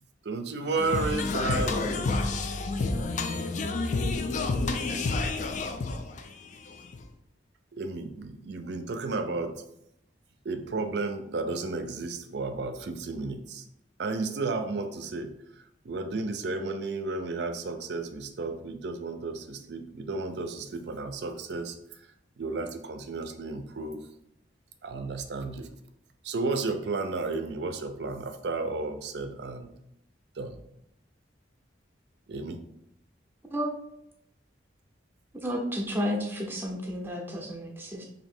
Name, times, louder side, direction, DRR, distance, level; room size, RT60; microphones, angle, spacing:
voice 1, 0.2-2.3 7.7-9.6 10.4-13.7 14.0-15.3 15.8-22.1 22.4-24.0 24.8-25.7 26.2-29.7 30.4-30.6 32.3-32.6, right 3 dB, 60° right, 0.4 m, -33 dB
voice 2, 0.8-7.1, left 3 dB, 40° left, 0.4 m, -30 dB
voice 3, 35.4-38.0, equal, 10° right, 0.6 m, -31 dB
3.1 x 2.7 x 4.3 m
head